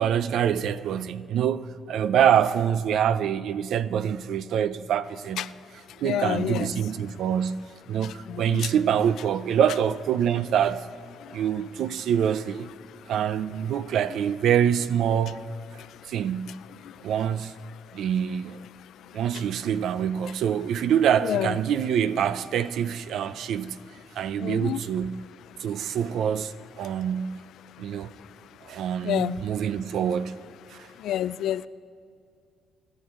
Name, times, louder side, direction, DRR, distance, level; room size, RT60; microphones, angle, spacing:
voice 1, 0.0-5.5 6.0-10.9 11.3-12.7 13.1-16.6 17.0-17.5 17.9-18.6 19.1-23.8 24.2-25.2 25.6-27.4 27.8-28.1 28.7-30.4 30.7-30.9, right 9 dB, 75° right, 0.5 m, -25 dB
voice 2, 6.0-6.7 8.0-8.7 11.2-11.4 13.0-13.1 15.7-16.1 16.5-16.6 16.8-17.1 17.9-18.0 18.8-19.4 21.2-21.5 24.4-24.8 26.8-26.9 27.8-29.4 30.9-31.7, left 11 dB, 80° left, 0.3 m, -31 dB
25.0 x 12.5 x 3.8 m
cardioid pair, 90°, 0 cm